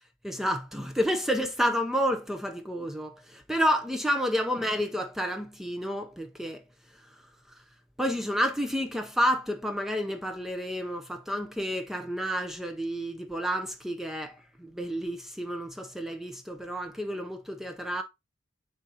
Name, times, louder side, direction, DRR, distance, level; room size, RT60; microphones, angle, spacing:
voice 1, 0.2-6.6 8.0-18.0, equal, ahead, 0.6 m, -30 dB
9.7 x 3.8 x 2.8 m
head